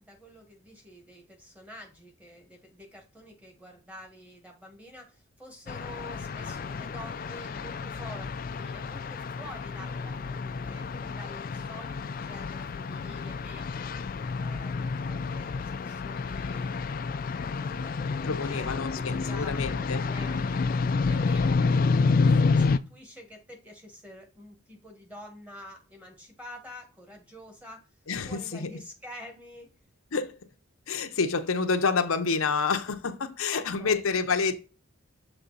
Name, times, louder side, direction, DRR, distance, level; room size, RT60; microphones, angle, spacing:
voice 1, 0.0-13.7 14.4-16.8 17.6-21.5 22.2-27.9 28.3-29.7 33.5-34.0, equal, 5° right, 1.4 m, -48 dB
sound 1, 5.7-22.8, left 4 dB, 40° left, 0.3 m, -29 dB
voice 2, 18.2-20.0 28.1-28.7 30.1-30.4 30.9-34.5, left 5 dB, 80° left, 0.7 m, -28 dB
7.0 x 3.6 x 3.9 m
head